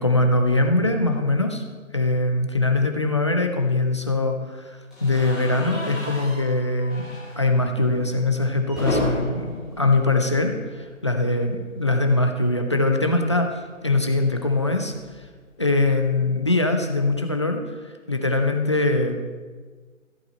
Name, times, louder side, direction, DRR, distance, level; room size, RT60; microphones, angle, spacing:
voice 1, 0.0-1.6 1.9-7.1 7.4-9.5 9.8-14.9 15.6-17.6 18.1-19.3, left 2 dB, 20° left, 4 dB, 0.6 m, -22 dB
sound 1, 4.9-10.9 11.2-11.4 11.7-11.8 13.1-15.4, equal, ahead, 1.1 m, -34 dB
14.0 x 7.9 x 4.3 m, 1.5 s
figure-of-eight pair, 155°, 40 cm